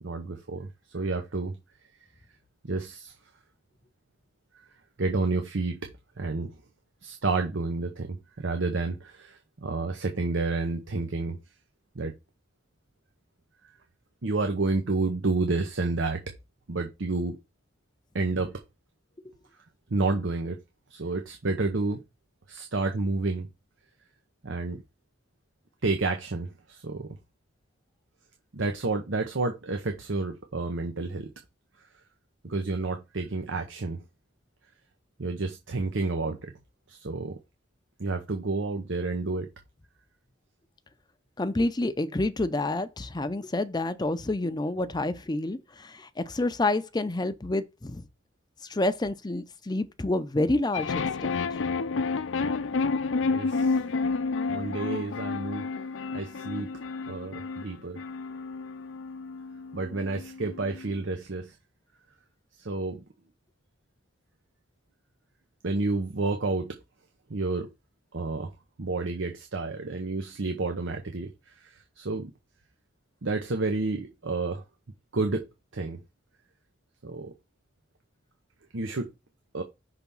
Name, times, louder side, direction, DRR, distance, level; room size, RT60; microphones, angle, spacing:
voice 1, 0.0-1.6 2.6-3.1 5.0-5.9 6.2-6.5 7.0-11.4 11.9-12.1 14.2-16.2 16.7-17.4 18.1-18.6 19.9-20.6 20.9-22.0 22.5-23.5 24.4-24.8 25.8-27.2 28.5-31.3 32.4-34.0 35.2-36.5 36.9-37.4 38.0-39.5 53.3-53.8 54.5-55.7 56.1-56.7 57.1-58.0 59.7-61.5 62.6-63.0 65.6-66.8 67.3-67.7 68.1-68.5 68.8-72.3 73.2-74.6 75.1-75.4 75.7-76.0 77.0-77.3 78.7-79.1 79.5-79.6, right 3 dB, 75° right, 0.9 m, -30 dB
voice 2, 41.4-48.1 48.6-51.4, left 2 dB, 20° left, 0.6 m, -28 dB
sound 1, 50.7-61.0, left 4 dB, 85° left, 0.5 m, -30 dB
5.9 x 3.5 x 5.4 m
head